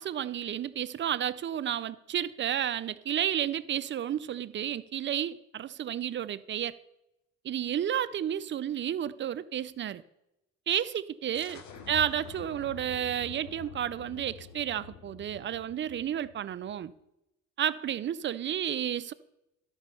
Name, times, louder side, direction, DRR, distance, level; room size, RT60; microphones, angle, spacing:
voice 1, 0.0-6.8 7.4-10.0 10.7-16.9 17.6-19.1, right 10 dB, 40° right, 0.4 m, -31 dB
sound 1, 11.3-16.8, left 7 dB, 70° left, 1.1 m, -47 dB
12.0 x 5.3 x 5.4 m
cardioid pair, 90°, 30 cm